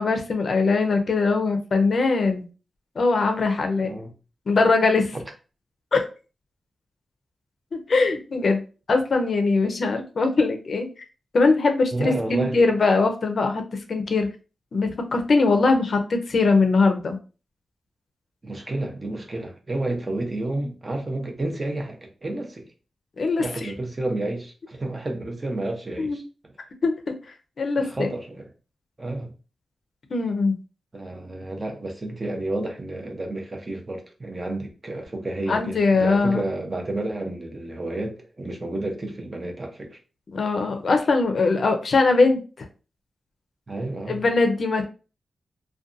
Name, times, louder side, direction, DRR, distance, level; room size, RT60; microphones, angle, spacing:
voice 1, 0.0-2.5 3.0-3.9 4.5-5.2 5.9-6.1 7.7-8.6 8.9-10.9 11.3-13.6 13.9-14.3 14.7-17.2 23.2-23.7 26.0-26.2 26.8-27.1 27.6-28.1 30.1-30.5 35.5-36.4 40.3-42.7 44.1-44.8, left 3 dB, 55° left, 0.4 m, -21 dB
voice 2, 3.8-4.1 11.9-12.6 18.4-22.7 23.4-26.2 27.8-28.5 29.0-29.3 30.9-40.0 43.7-44.2, right 2 dB, 30° right, 0.5 m, -30 dB
2.6 x 2.2 x 2.4 m
wide cardioid pair, 115°, 0 cm